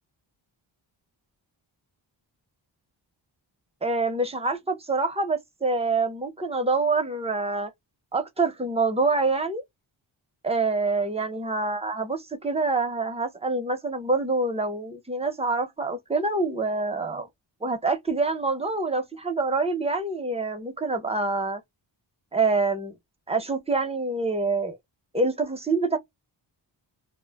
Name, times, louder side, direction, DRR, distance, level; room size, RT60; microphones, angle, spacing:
voice 1, 3.8-7.7 8.1-9.6 10.4-17.3 17.6-21.6 22.3-22.9 23.3-24.8 25.1-26.0, right 3 dB, 15° right, 0.6 m, -26 dB
2.1 x 2.0 x 3.3 m
wide cardioid pair, 145°, 46 cm